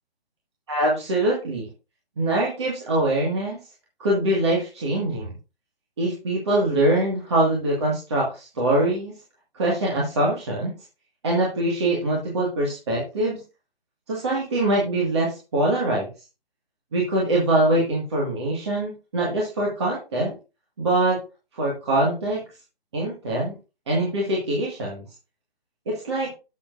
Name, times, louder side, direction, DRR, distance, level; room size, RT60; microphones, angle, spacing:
voice 1, 0.7-1.7 2.2-3.6 4.0-5.3 6.0-9.1 9.5-10.7 11.2-13.4 14.1-16.1 16.9-20.4 20.8-21.2 21.5-22.4 22.9-23.5 23.9-25.0 25.9-26.3, right 1 dB, 30° right, -4 dB, 1.8 m, -23 dB
10.0 x 7.4 x 2.5 m, 0.30 s
hypercardioid pair, 175°, 30 cm